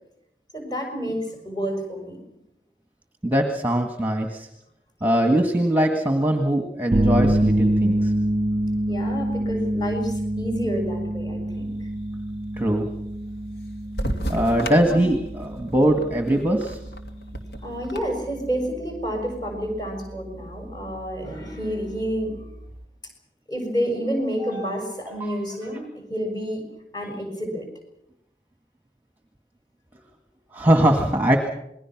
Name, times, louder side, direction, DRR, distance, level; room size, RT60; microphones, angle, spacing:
voice 1, 0.5-2.2 8.9-11.8 14.9-15.1 17.6-22.6 23.5-26.6 26.9-27.7, equal, 25° left, 4 dB, 6.3 m, -29 dB
voice 2, 3.2-4.5 5.0-8.1 12.6-12.9 14.3-16.8 24.5-24.6 25.2-25.4 30.5-31.4, right 1 dB, 10° right, 4 dB, 1.7 m, -21 dB
sound 1, 6.9-22.8, right 1 dB, 30° right, 1.0 m, -27 dB
sound 2, 14.0-18.0, right 1 dB, 60° left, 2.6 m, -33 dB
27.5 x 21.0 x 6.1 m, 0.80 s
head